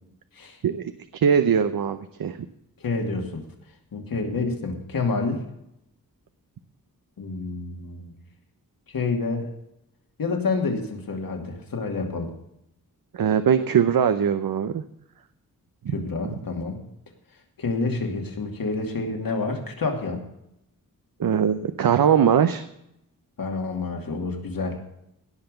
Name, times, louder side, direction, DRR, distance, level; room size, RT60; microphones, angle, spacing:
voice 1, 1.1-2.4 13.1-14.8 15.8-15.9 21.2-22.6, right 8 dB, 70° right, 10 dB, 0.8 m, -21 dB
voice 2, 2.8-3.4 3.9-5.4 7.2-8.1 8.9-9.5 10.2-12.3 15.9-16.8 17.6-20.2 23.4-24.8, left 3 dB, 70° left, 3 dB, 2.6 m, -28 dB
17.0 x 5.9 x 7.8 m, 0.81 s
wide cardioid pair, 135°, 36 cm